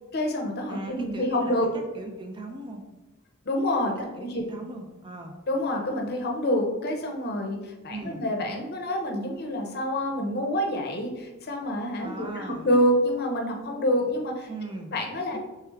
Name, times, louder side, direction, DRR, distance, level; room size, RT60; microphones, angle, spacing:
voice 1, 0.1-1.7 3.5-4.4 5.5-14.5 14.9-15.4, equal, 45° left, 2 dB, 0.6 m, -27 dB
voice 2, 0.7-2.8 4.0-5.4 7.9-8.2 12.0-12.7 14.5-14.9 15.3-15.4, right 2 dB, 20° right, 3 dB, 0.3 m, -39 dB
3.4 x 3.3 x 3.3 m, 1.1 s
head